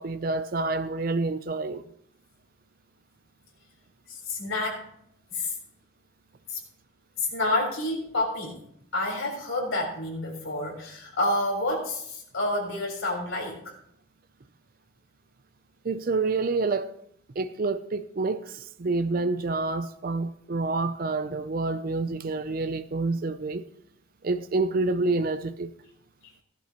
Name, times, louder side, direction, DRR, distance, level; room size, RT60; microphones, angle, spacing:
voice 1, 0.0-1.8 15.8-17.0 17.4-23.6 24.2-25.7, right 3 dB, 45° right, 0.5 m, -28 dB
voice 2, 4.1-4.9 5.3-5.5 6.5-6.6 7.2-8.6 8.9-13.7, left 2 dB, 80° left, 4.0 m, -29 dB
16.0 x 11.5 x 2.9 m
head